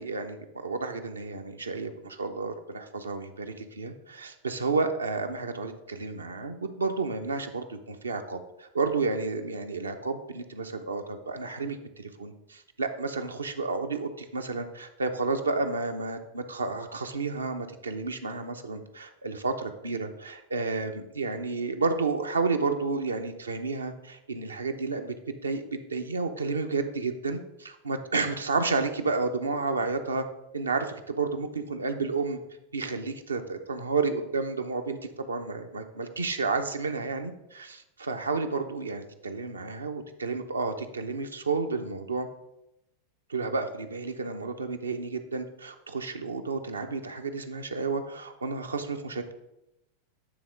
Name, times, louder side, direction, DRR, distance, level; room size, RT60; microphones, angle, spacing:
voice 1, 0.0-25.1 25.4-30.2 30.5-32.4 32.7-42.3 43.3-49.3, right 4 dB, 90° right, 6 dB, 0.7 m, -31 dB
9.0 x 3.7 x 4.9 m, 0.88 s
hypercardioid pair, 95°, 0 cm